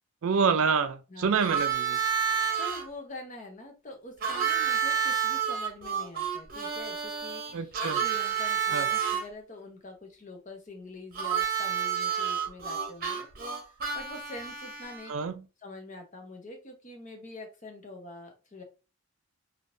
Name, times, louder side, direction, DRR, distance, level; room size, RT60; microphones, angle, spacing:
voice 1, 0.2-2.0 7.5-8.0 8.7-8.9 15.1-15.4, right 6 dB, 70° right, 0.4 m, -27 dB
Harmonica, 1.4-2.8 4.2-9.2 11.1-15.1, right 7 dB, 40° right, 0.8 m, -29 dB
voice 2, 2.6-13.3 13.5-18.6, left 2 dB, 35° left, 0.8 m, -45 dB
3.6 x 2.8 x 2.6 m
head